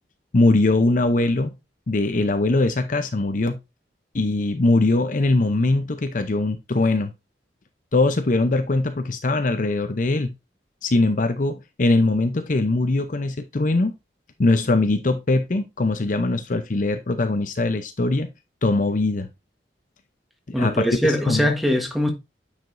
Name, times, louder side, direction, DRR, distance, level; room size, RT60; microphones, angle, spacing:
voice 1, 0.3-1.5 1.9-3.6 4.1-7.1 7.9-10.3 10.8-13.9 14.4-18.3 18.6-19.3 20.5-21.5, left 2 dB, 50° left, 0.7 m, -21 dB
voice 2, 20.5-22.1, equal, ahead, 1.3 m, -21 dB
9.1 x 5.1 x 2.6 m
head